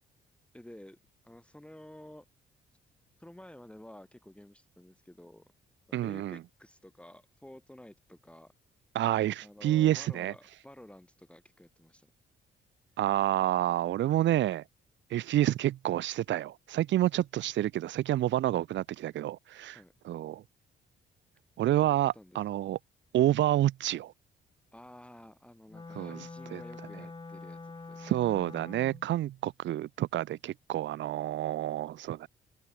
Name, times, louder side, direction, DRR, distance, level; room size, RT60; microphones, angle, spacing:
voice 1, 0.5-1.0 1.2-2.3 3.2-5.5 6.0-8.5 9.4-12.1 19.7-19.9 21.8-22.4 24.7-28.2, left 1 dB, 5° left, 3.6 m, -51 dB
voice 2, 5.9-6.4 8.9-10.3 13.0-14.6 15.1-19.8 20.0-20.4 21.6-22.8 23.1-24.1 26.0-26.6 28.0-32.3, right 13 dB, 70° right, 0.7 m, -29 dB
Wind instrument woodwind instrument, 25.7-29.1, left 3 dB, 25° left, 6.6 m, -45 dB
open air
cardioid pair, 90°, 20 cm